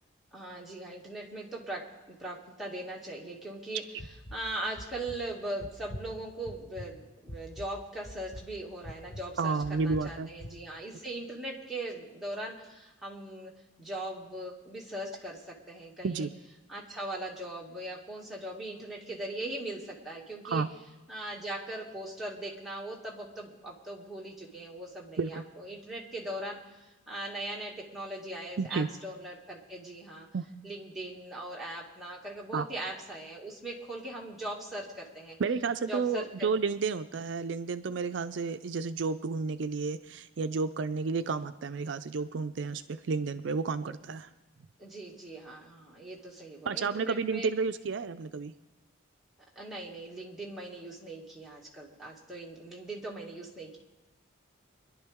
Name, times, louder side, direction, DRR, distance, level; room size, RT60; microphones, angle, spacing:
voice 1, 0.3-3.8 4.3-13.5 13.8-16.3 16.7-20.6 21.1-30.3 30.6-35.4 35.9-36.5 44.8-47.5 49.6-53.8, right 1 dB, ahead, -5 dB, 2.2 m, -40 dB
sound 1, 4.0-4.4 4.8-5.2 5.6-6.1 6.5-6.9 7.3-7.7 8.0-8.5 8.8-9.2 9.6-10.1 10.4-10.5, equal, 30° left, 0.8 m, -43 dB
voice 2, 9.4-10.3 16.0-16.3 20.4-20.7 25.2-25.4 28.6-28.9 30.3-30.5 32.5-32.7 35.4-44.3 46.7-48.5, right 4 dB, 60° right, 11 dB, 0.4 m, -31 dB
24.5 x 11.0 x 3.6 m, 1.1 s
head